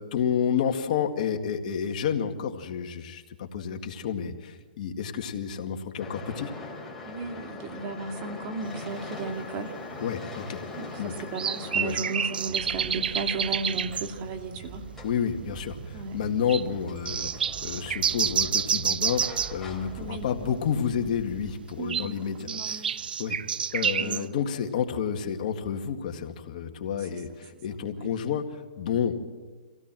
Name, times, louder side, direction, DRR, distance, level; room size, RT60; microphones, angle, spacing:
voice 1, 0.0-6.5 10.0-10.6 11.0-11.1 11.7-12.0 15.0-19.2 19.5-23.4 23.7-29.3, left 7 dB, 55° left, 5 dB, 2.0 m, -30 dB
sound 1, 6.0-20.7, left 3 dB, 10° left, 4.1 m, -43 dB
voice 2, 7.0-9.8 10.8-14.8 15.9-16.2 20.0-20.3 21.8-22.9 24.0-24.3 27.1-27.2 27.9-28.1, right 3 dB, 40° right, 5 dB, 2.6 m, -35 dB
sound 2, 9.1-9.2 10.0-10.1 11.4-14.1 14.8-14.9 15.1-15.2 15.6-15.9 16.5-16.6 17.1-19.6 21.7-24.2, right 7 dB, 85° right, 0.6 m, -28 dB
sound 3, 12.4-21.5, right 5 dB, 55° right, 4.0 m, -44 dB
25.5 x 17.0 x 7.6 m, 1.4 s
hypercardioid pair, 145°, 5 cm